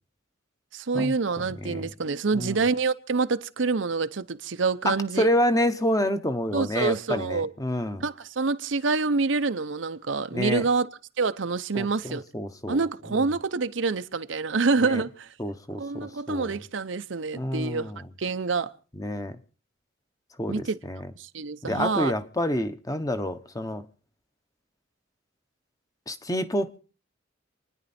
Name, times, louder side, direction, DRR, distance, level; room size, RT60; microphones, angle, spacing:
voice 1, 0.7-5.3 6.5-7.5 8.0-10.9 11.2-12.2 12.7-15.3 15.8-17.9 18.2-18.7 20.5-20.8 21.1-22.1, right 4 dB, 75° right, 0.8 m, -27 dB
voice 2, 1.6-1.9 2.3-2.6 4.8-8.1 10.3-10.6 11.7-12.8 13.1-13.2 14.8-15.0 15.4-16.6 17.3-18.0 18.9-19.4 20.4-21.1 21.6-23.8 26.1-26.8, equal, 20° left, 1.0 m, -28 dB
28.5 x 10.0 x 4.3 m
head